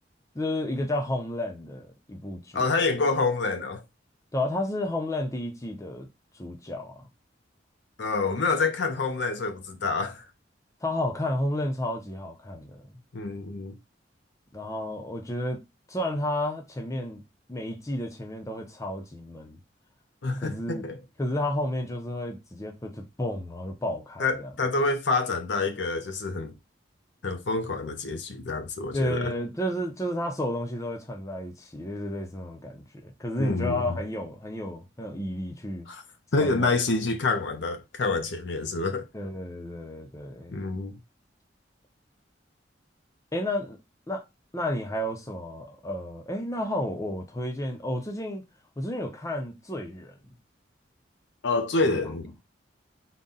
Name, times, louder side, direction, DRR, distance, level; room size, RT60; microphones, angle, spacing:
voice 1, 0.3-2.6 4.3-6.1 6.4-7.1 10.8-12.9 14.5-15.6 15.9-17.2 17.5-19.6 20.4-20.9 21.2-24.5 28.9-35.9 36.4-36.8 39.1-40.6 43.3-43.8 44.1-44.2 44.5-48.4 48.8-50.1, left 1 dB, 15° left, 0.6 m, -31 dB
voice 2, 2.5-3.8 8.0-10.2 13.1-13.8 20.2-21.0 24.2-26.5 27.2-29.3 33.4-34.0 35.9-36.0 36.3-39.1 40.5-41.0 51.4-52.3, left 3 dB, 70° left, 0.6 m, -27 dB
4.0 x 2.2 x 3.7 m
head